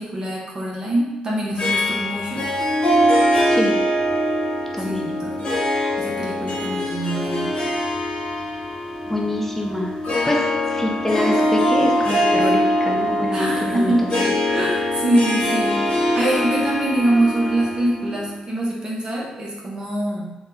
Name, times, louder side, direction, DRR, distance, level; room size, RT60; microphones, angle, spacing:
voice 1, 0.0-2.5 4.8-5.4 6.0-7.6 13.3-14.1 14.5-20.4, right 1 dB, 30° right, -4 dB, 0.8 m, -24 dB
Harp, 1.6-18.3, equal, 40° left, 1.1 m, -22 dB
voice 2, 4.7-5.1 9.1-10.0 10.2-14.3, left 1 dB, 10° left, 0 dB, 0.6 m, -26 dB
2.8 x 2.2 x 3.6 m, 0.97 s
cardioid pair, 70°, 3 cm